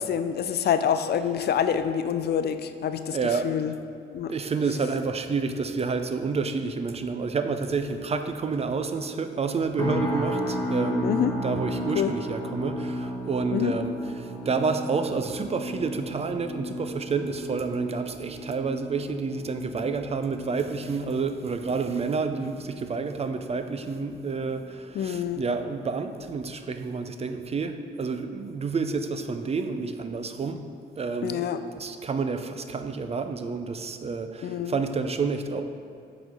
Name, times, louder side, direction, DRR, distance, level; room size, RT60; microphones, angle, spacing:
voice 1, 0.0-3.2 3.4-3.7 4.1-4.3 11.0-11.3 11.9-12.1 13.5-13.7 24.9-25.4 31.2-31.6 34.4-34.8, left 8 dB, 55° left, 10 dB, 0.4 m, -26 dB
voice 2, 3.1-3.5 4.3-11.1 11.4-30.6 31.0-31.4 31.8-35.6, right 4 dB, 30° right, 8 dB, 0.5 m, -29 dB
sound 1, 9.8-25.0 25.3-25.7 26.2-26.4, equal, 20° left, 1.2 m, -34 dB
7.6 x 4.0 x 5.2 m, 2.4 s
cardioid pair, 90°, 20 cm